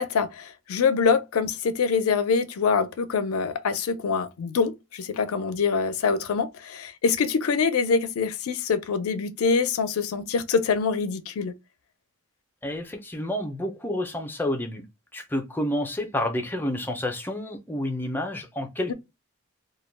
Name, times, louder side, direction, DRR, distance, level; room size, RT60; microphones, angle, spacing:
voice 1, 0.0-11.5, left 5 dB, 75° left, 0.4 m, -25 dB
voice 2, 12.6-14.8 15.1-18.9, left 1 dB, 10° left, 0.4 m, -29 dB
2.2 x 2.1 x 3.1 m
head